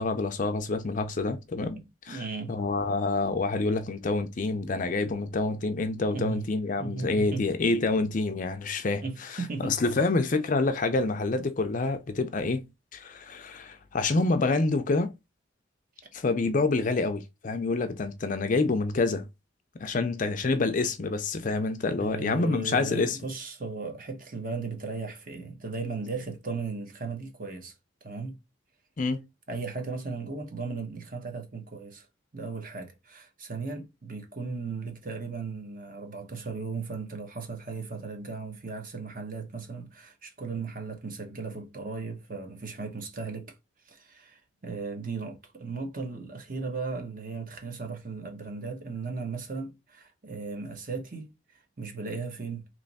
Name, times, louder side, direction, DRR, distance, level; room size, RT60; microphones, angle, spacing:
voice 1, 0.0-1.8 2.1-12.6 12.9-15.1 16.1-19.3 19.8-23.2 29.0-29.2, left 3 dB, 40° left, 0.4 m, -27 dB
voice 2, 1.7-2.5 6.1-6.5 6.8-7.5 9.0-9.7 22.0-27.7 28.0-28.4 29.5-32.1 32.3-43.6 43.9-51.3 51.8-52.7, right 4 dB, 40° right, 0.9 m, -36 dB
3.3 x 3.0 x 4.0 m
head